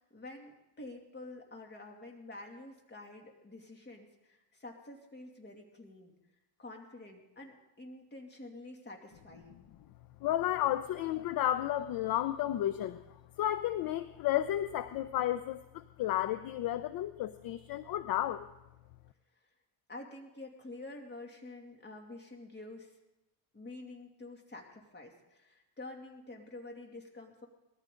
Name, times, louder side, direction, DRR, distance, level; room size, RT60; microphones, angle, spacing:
voice 1, 0.0-6.1 6.6-9.7 19.9-22.9 23.5-27.5, left 2 dB, 25° left, 2 dB, 2.6 m, -48 dB
voice 2, 10.2-13.0 13.4-18.5, left 12 dB, 55° left, 13 dB, 0.6 m, -32 dB
19.5 x 14.0 x 3.8 m, 0.96 s
cardioid pair, 115°, 44 cm